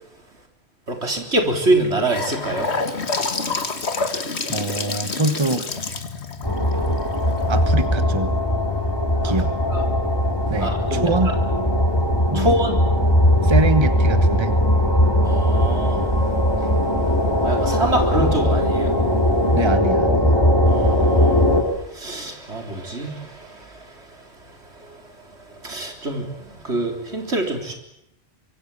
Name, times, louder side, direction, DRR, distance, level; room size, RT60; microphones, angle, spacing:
voice 1, 0.9-2.8 9.2-9.3 9.7-9.8 10.6-11.1 12.3-12.8 15.2-16.1 17.4-19.0 20.7-21.5 21.7-25.1 25.5-27.7, right 1 dB, 75° right, 4 dB, 4.3 m, -25 dB
Gurgling / Sink (filling or washing) / Bathtub (filling or washing), 1.7-7.8, left 4 dB, 75° left, 2.1 m, -28 dB
voice 2, 4.5-5.9 7.5-8.3 9.2-9.6 10.5-11.3 12.3-12.5 13.4-14.5 19.5-20.4, right 2 dB, 25° right, 10 dB, 1.3 m, -24 dB
sound 1, 6.4-21.6, equal, 20° left, 4.0 m, -19 dB
25.0 x 23.5 x 8.7 m, 0.78 s
omnidirectional pair, 1.1 m